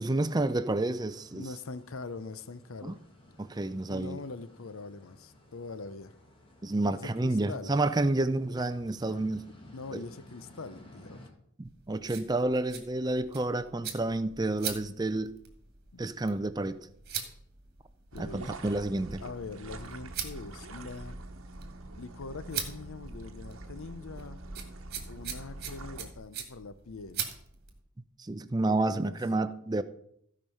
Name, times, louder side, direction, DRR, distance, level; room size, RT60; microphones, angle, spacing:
voice 1, 0.0-1.4 2.8-3.0 3.4-4.2 6.6-9.4 9.9-10.0 11.6-15.3 16.0-16.8 18.2-19.2 28.2-29.8, right 2 dB, 20° right, 0.5 m, -30 dB
sound 1, 0.9-11.3, left 1 dB, 25° left, 1.8 m, -56 dB
voice 2, 1.3-3.0 3.9-6.1 6.9-7.7 9.7-11.2 15.9-16.0 18.1-18.6 19.2-21.2 22.0-24.4 25.1-27.2 28.6-29.2, left 3 dB, 70° left, 0.7 m, -43 dB
sound 2, 11.6-27.8, right 8 dB, 45° right, 1.8 m, -43 dB
sound 3, 18.1-26.1, right 2 dB, 70° right, 1.1 m, -44 dB
15.5 x 5.2 x 5.5 m
head